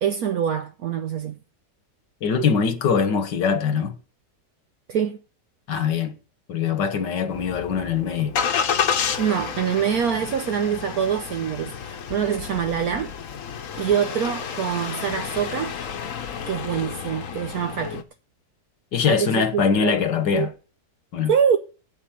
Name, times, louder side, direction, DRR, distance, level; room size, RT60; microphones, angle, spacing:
voice 1, 0.0-1.4 4.9-5.2 9.2-13.1 13.8-15.7 16.5-18.0 19.1-20.0 20.3-20.5 21.3-21.6, right 8 dB, 65° right, 1.1 m, -25 dB
voice 2, 2.2-4.0 5.7-6.2 6.5-8.4 18.9-20.5 21.1-21.3, left 6 dB, 85° left, 1.9 m, -22 dB
Engine starting, 7.3-18.0, left 7 dB, 55° left, 1.2 m, -30 dB
8.3 x 8.2 x 7.7 m
omnidirectional pair, 1.8 m